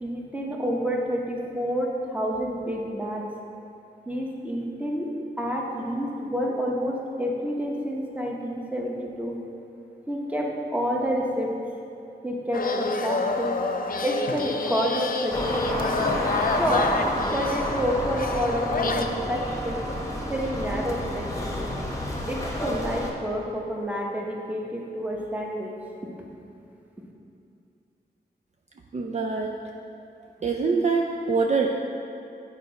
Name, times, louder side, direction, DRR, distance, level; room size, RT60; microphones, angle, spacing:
voice 1, 0.0-3.2 4.1-5.1 5.4-9.4 10.1-11.5 12.2-13.6 14.0-16.2 16.6-16.9 17.3-19.8 20.3-21.5 22.3-25.7, equal, 10° right, -2 dB, 0.9 m, -29 dB
sound 1, 12.5-19.1, left 4 dB, 55° left, 0.5 m, -28 dB
sound 2, 15.3-23.1, left 1 dB, 20° left, 1.0 m, -30 dB
voice 2, 28.9-29.5 30.4-31.7, right 4 dB, 40° right, 1 dB, 0.4 m, -24 dB
8.3 x 4.7 x 5.1 m, 2.6 s
wide cardioid pair, 125°, 17 cm